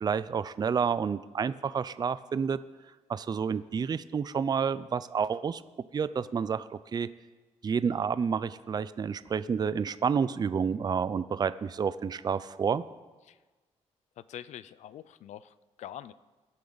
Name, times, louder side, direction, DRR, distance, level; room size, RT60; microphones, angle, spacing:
voice 1, 0.0-2.6 3.1-5.6 5.9-7.1 7.6-12.8, right 6 dB, 35° right, 14 dB, 0.4 m, -29 dB
voice 2, 14.2-16.1, left 11 dB, 80° left, 16 dB, 0.4 m, -45 dB
21.5 x 8.5 x 4.0 m, 1.2 s
cardioid pair, 100°, 12 cm